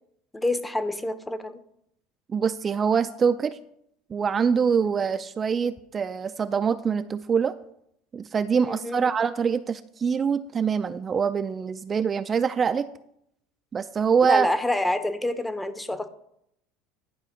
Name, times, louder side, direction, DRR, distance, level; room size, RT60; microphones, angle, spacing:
voice 1, 0.3-1.6 8.6-9.1 14.2-16.1, left 1 dB, 10° left, 13 dB, 0.8 m, -27 dB
voice 2, 2.3-3.6 4.1-7.5 8.1-12.9 13.7-14.5, right 6 dB, 30° right, 11 dB, 0.4 m, -24 dB
11.0 x 5.1 x 5.1 m, 0.76 s
supercardioid pair, 95°, 0 cm